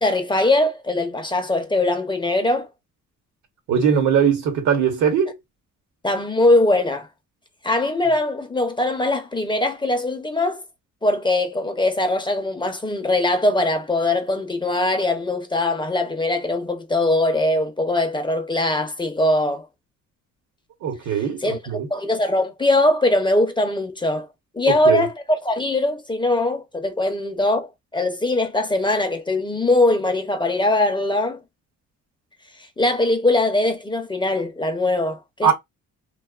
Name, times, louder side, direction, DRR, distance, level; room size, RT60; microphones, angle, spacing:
voice 1, 0.0-2.7 6.0-7.1 7.6-10.6 11.0-19.7 21.4-24.3 24.5-27.7 27.9-31.4 32.8-35.5, left 2 dB, 15° left, 0.5 m, -21 dB
voice 2, 3.7-5.3 20.8-21.9 24.7-25.1 35.4-35.5, right 7 dB, 75° right, 1.0 m, -20 dB
2.5 x 2.3 x 2.4 m
cardioid pair, 90°, 30 cm